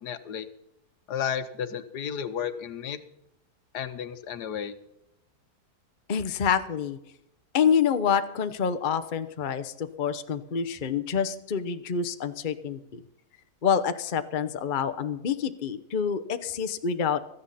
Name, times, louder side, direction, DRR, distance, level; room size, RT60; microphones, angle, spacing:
voice 1, 0.0-0.5 1.1-3.0 3.7-4.7, left 8 dB, 80° left, 11 dB, 1.6 m, -32 dB
voice 2, 6.1-7.0 7.5-13.0 13.6-17.2, left 7 dB, 40° left, 10 dB, 0.8 m, -27 dB
16.5 x 14.0 x 4.2 m, 0.85 s
omnidirectional pair, 1.7 m